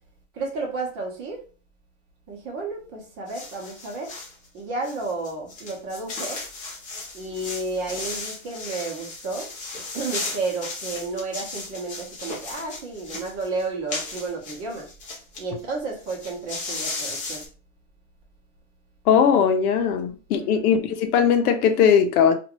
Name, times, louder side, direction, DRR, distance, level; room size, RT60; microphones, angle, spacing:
voice 1, 0.3-1.4 2.3-4.1 4.5-6.4 7.1-14.9 15.4-17.4 20.4-20.8, right 3 dB, 30° right, 1.1 m, -32 dB
sound 1, 3.3-4.3 4.8-15.4 15.7-15.8 16.0-17.5, left 3 dB, 20° left, 0.6 m, -35 dB
voice 2, 19.1-22.4, left 7 dB, 85° left, 0.8 m, -19 dB
2.8 x 2.5 x 3.0 m
supercardioid pair, 165°, 43 cm